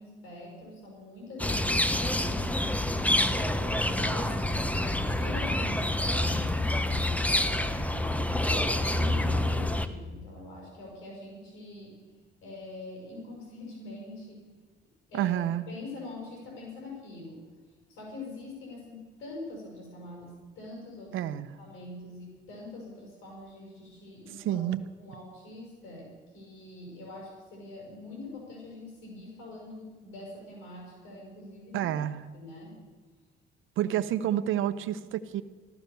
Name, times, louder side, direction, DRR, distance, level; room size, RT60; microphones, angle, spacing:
voice 1, 0.0-2.5 3.2-4.7 4.9-7.8 8.4-11.9 12.4-14.4 15.1-15.3 15.7-17.4 17.9-21.2 21.6-24.6 25.0-31.9 32.3-32.8 33.8-33.9 34.5-34.7, left 2 dB, 85° left, -2 dB, 5.7 m, -44 dB
sound 1, 1.4-9.9, left 1 dB, 5° left, 1.0 m, -27 dB
voice 2, 15.1-15.7 21.1-21.5 24.4-24.8 31.7-32.2 33.8-35.4, right 11 dB, 85° right, 12 dB, 0.9 m, -29 dB
15.5 x 13.0 x 6.9 m, 1.4 s
cardioid pair, 90°, 20 cm